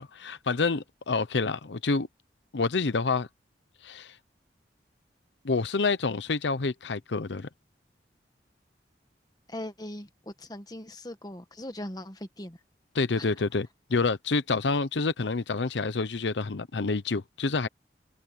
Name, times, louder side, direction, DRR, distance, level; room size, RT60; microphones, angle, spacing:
voice 1, 0.0-2.1 2.5-3.3 3.8-4.2 5.4-7.5 12.9-17.7, left 4 dB, 85° left, 0.8 m, -28 dB
voice 2, 9.5-12.6 13.2-13.3, left 1 dB, 20° left, 1.5 m, -40 dB
head